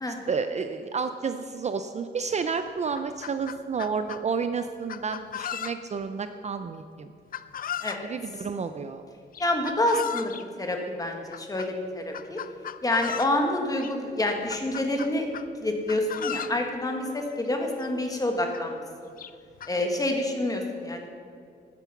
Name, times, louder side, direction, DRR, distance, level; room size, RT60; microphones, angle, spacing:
voice 1, 0.3-7.1 8.0-9.0, right 5 dB, 35° right, 9 dB, 0.4 m, -31 dB
Chicken rooster, 2.3-2.4 2.8-4.2 4.9-6.0 7.3-8.1 9.3-10.4 11.3-11.7 12.1-13.4 13.8-13.9 14.3-15.5 15.9-16.6 17.5-17.6 17.8-17.9 18.5-18.6 19.2-19.7, left 9 dB, 50° left, 0.5 m, -36 dB
voice 2, 9.4-10.3 10.6-12.4 12.8-15.3 15.6-18.8 19.7-21.1, left 1 dB, 20° left, 3 dB, 1.5 m, -27 dB
13.0 x 9.8 x 5.9 m, 2.4 s
wide cardioid pair, 170°, 19 cm